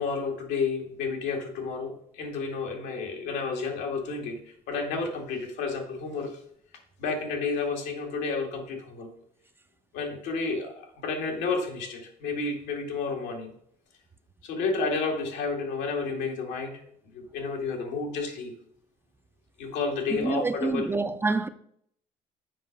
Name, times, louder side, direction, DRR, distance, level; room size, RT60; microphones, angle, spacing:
voice 1, 0.0-6.3 7.0-9.1 9.9-13.5 14.4-16.8 17.1-18.5 19.6-20.8, left 4 dB, 90° left, 2.0 m, -31 dB
voice 2, 20.1-21.5, right 3 dB, 15° right, 0.5 m, -27 dB
7.6 x 5.2 x 5.2 m
cardioid pair, 110°, 17 cm